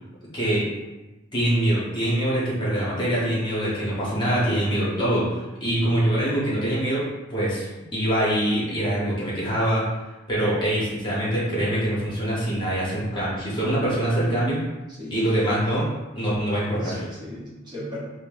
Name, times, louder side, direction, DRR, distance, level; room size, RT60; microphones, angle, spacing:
voice 1, 0.3-0.7 1.3-9.9 10.3-14.6 15.1-15.8 16.2-17.0, right 1 dB, 25° left, -7 dB, 1.0 m, -24 dB
voice 2, 15.0-15.8 16.8-18.0, equal, 25° right, -8 dB, 0.9 m, -37 dB
5.2 x 2.1 x 2.5 m, 1.1 s
head